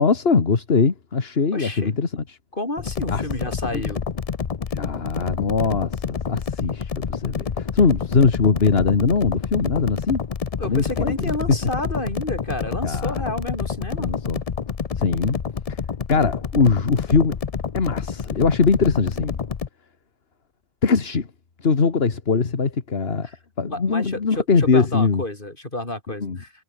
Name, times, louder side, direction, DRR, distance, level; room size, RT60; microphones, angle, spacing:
voice 1, 0.0-2.4 3.1-3.2 3.7-3.8 4.7-10.2 10.7-11.3 12.8-13.3 14.0-14.4 15.0-15.4 15.7-15.8 16.1-17.3 17.7-19.4 20.8-21.3 21.6-23.3 23.6-25.2 26.2-26.4, left 5 dB, 75° left, 1.9 m, -21 dB
voice 2, 1.5-1.9 2.5-4.0 10.6-14.1 23.2-26.5, left 1 dB, 55° left, 5.6 m, -30 dB
sound 1, 2.8-19.7, left 6 dB, 40° left, 0.7 m, -28 dB
omnidirectional pair, 1.0 m